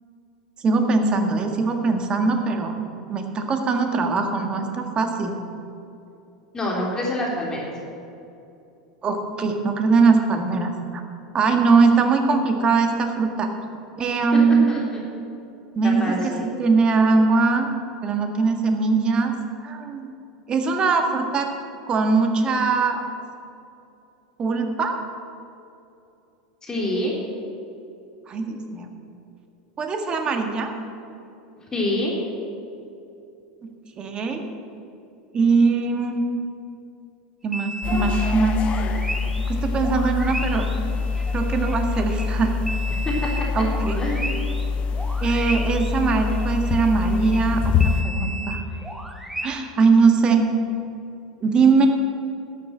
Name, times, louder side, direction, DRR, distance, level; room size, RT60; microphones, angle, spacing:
voice 1, 0.6-2.7 3.1-5.3 9.0-11.0 11.3-13.5 14.0-14.7 15.7-17.7 18.0-19.3 19.6-20.1 20.5-21.5 21.9-23.0 24.4-25.0 28.3-28.9 29.8-30.7 33.9-34.4 35.3-36.2 37.4-38.6 39.5-40.9 41.3-42.6 43.5-44.1 45.2-48.6 49.4-50.5 51.4-51.9, right 4 dB, 30° right, 4 dB, 1.8 m, -21 dB
voice 2, 6.5-7.7 14.3-14.4 14.7-15.0 15.8-16.5 26.6-27.1 31.7-32.1 43.1-43.6 44.0-44.4, left 1 dB, 20° left, -3 dB, 3.3 m, -26 dB
sound 1, 37.5-39.5 39.8-44.7 44.9-49.5, right 1 dB, 5° right, 1.3 m, -35 dB
sound 2, 37.8-48.0, left 5 dB, 40° left, 0.8 m, -25 dB
12.5 x 7.7 x 7.4 m, 2.7 s
hypercardioid pair, 85°, 3 cm